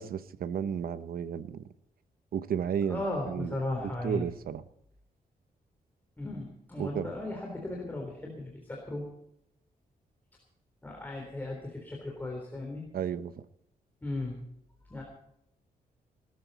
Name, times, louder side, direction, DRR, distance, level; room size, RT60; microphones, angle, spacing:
voice 1, 0.0-1.6 2.3-3.5 4.0-4.6 6.8-7.1 12.9-13.3, right 8 dB, 80° right, 13 dB, 0.9 m, -33 dB
voice 2, 2.9-4.3 6.2-9.1 10.8-12.9 14.0-14.4 14.9-15.0, left 2 dB, 10° left, -1 dB, 3.6 m, -36 dB
19.0 x 13.0 x 4.2 m, 0.77 s
wide cardioid pair, 165°, 15 cm